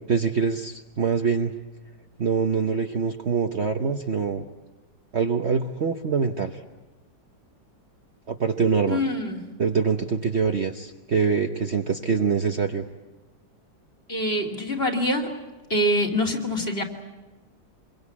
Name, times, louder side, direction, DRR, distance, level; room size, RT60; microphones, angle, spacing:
voice 1, 0.1-1.5 2.2-4.5 5.1-6.6 8.3-9.0 9.6-12.8, right 5 dB, 45° right, 4 dB, 1.0 m, -24 dB
voice 2, 8.9-9.4 14.1-15.3 15.7-16.8, equal, 35° left, 0 dB, 2.8 m, -25 dB
26.0 x 22.5 x 8.5 m, 1.2 s
omnidirectional pair, 1.9 m